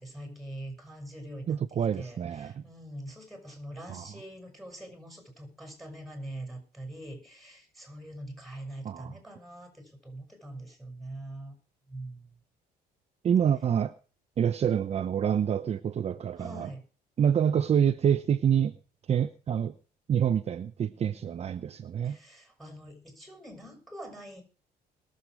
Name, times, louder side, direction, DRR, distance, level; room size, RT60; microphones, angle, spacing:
voice 1, 0.0-1.6 1.9-11.5 11.9-12.4 16.4-16.9 21.1-21.4 22.0-24.4, right 1 dB, ahead, 5 dB, 6.5 m, -43 dB
voice 2, 1.5-2.6 3.9-4.1 8.8-9.2 13.2-13.9 14.4-16.7 17.2-18.7 19.1-19.7 20.1-22.2, right 8 dB, 40° right, 9 dB, 0.7 m, -27 dB
21.5 x 7.8 x 4.9 m, 0.37 s
cardioid pair, 110°, 17 cm